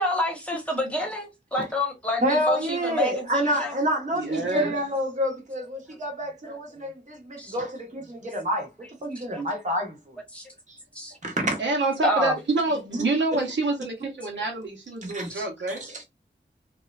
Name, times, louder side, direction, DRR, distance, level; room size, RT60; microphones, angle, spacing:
voice 1, 0.0-3.7 6.4-6.6 7.4-7.6 9.3-9.4 10.3-10.4 10.9-11.1 12.0-12.3 15.3-15.5, left 1 dB, 5° left, 1.0 m, -28 dB
voice 2, 2.2-8.7 9.0-10.2 10.7-10.8 11.2-11.6 15.0-15.3 15.7-16.0, equal, 40° right, 0.7 m, -28 dB
voice 3, 4.1-4.7 11.6-15.8, right 2 dB, 75° right, 0.7 m, -27 dB
2.9 x 2.0 x 2.2 m
wide cardioid pair, 80°, 19 cm